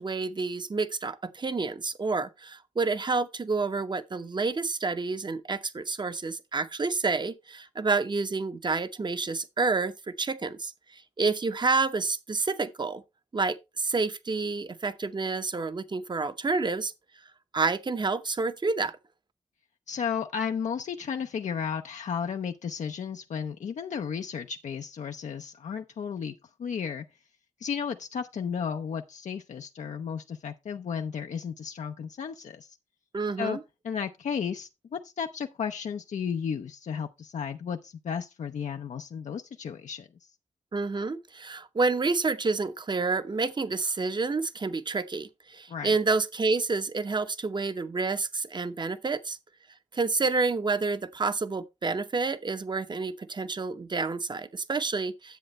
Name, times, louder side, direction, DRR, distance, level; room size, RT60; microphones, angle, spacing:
voice 1, 0.0-9.9 10.2-13.0 13.3-16.9 17.5-18.9 33.1-33.6 40.7-49.4 49.9-55.4, right 4 dB, 40° right, 0.9 m, -29 dB
voice 2, 19.9-26.3 26.6-27.0 27.6-32.8 33.4-33.6 33.8-40.3 45.7-46.0, left 7 dB, 75° left, 0.6 m, -33 dB
10.0 x 7.6 x 3.2 m
cardioid pair, 80°, 12 cm